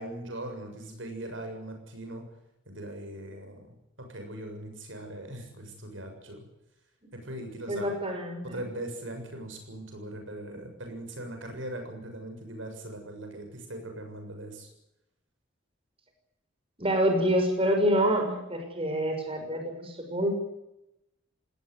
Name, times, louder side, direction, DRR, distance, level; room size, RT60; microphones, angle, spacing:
voice 1, 0.0-2.2 2.7-6.4 7.1-7.9 8.4-14.7, right 1 dB, 75° right, 5 dB, 7.2 m, -40 dB
voice 2, 7.7-8.6 16.8-20.3, equal, 30° right, 4 dB, 6.0 m, -27 dB
19.5 x 19.0 x 9.7 m, 0.87 s
head